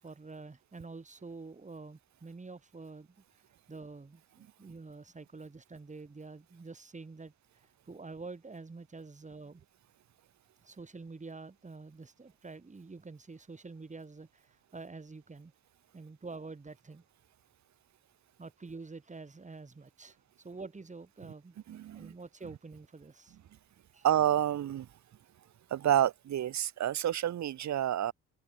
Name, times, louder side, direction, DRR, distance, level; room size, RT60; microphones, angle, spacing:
voice 1, 0.0-3.2 3.7-9.6 10.6-15.5 15.9-17.0 18.4-20.2 20.4-21.6 21.9-23.4 23.9-24.1, right 3 dB, 25° right, 5.3 m, -47 dB
voice 2, 21.7-22.1 24.0-24.9 25.7-28.1, right 11 dB, 65° right, 2.5 m, -29 dB
cardioid pair, 90°, 30 cm